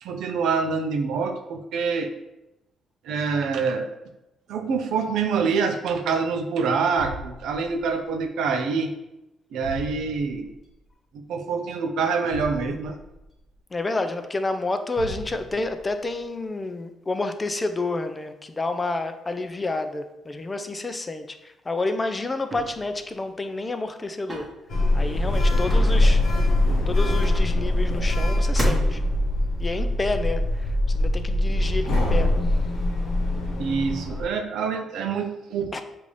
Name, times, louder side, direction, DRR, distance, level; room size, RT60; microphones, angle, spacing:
voice 1, 0.0-2.1 3.0-3.9 4.5-8.9 9.5-10.5 11.1-13.0 33.6-35.7, right 5 dB, 80° right, 5 dB, 0.5 m, -26 dB
sound 1, 7.0-8.1 9.6-10.6 12.3-13.4 15.0-15.9, equal, 40° left, 1.4 m, -38 dB
voice 2, 13.7-24.5 24.9-26.2 26.9-29.0 29.6-32.3 35.7-35.8, left 2 dB, 25° left, 8 dB, 0.4 m, -29 dB
sound 2, 22.5-22.9 24.3-24.6 25.7-26.3 27.2-27.9 28.6-29.3, right 1 dB, 30° right, 1.0 m, -34 dB
Sliding door, 24.7-34.2, left 1 dB, 75° left, 0.9 m, -22 dB
5.2 x 2.5 x 3.2 m, 0.91 s
cardioid pair, 90°, 0 cm